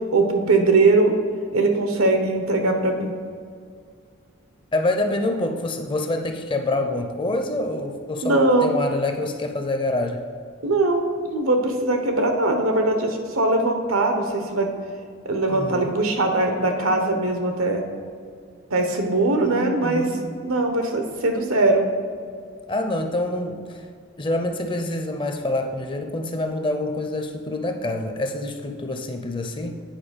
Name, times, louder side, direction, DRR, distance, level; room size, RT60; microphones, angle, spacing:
voice 1, 0.1-1.1 1.5-3.1 8.2-8.8 10.6-14.7 15.2-17.8 18.7-20.1 20.4-21.8, right 2 dB, 85° right, 4 dB, 1.0 m, -21 dB
voice 2, 4.7-10.2 15.5-16.0 19.4-20.2 22.7-23.8 24.2-29.7, left 2 dB, 25° left, 5 dB, 0.5 m, -26 dB
9.0 x 4.6 x 5.2 m, 2.2 s
head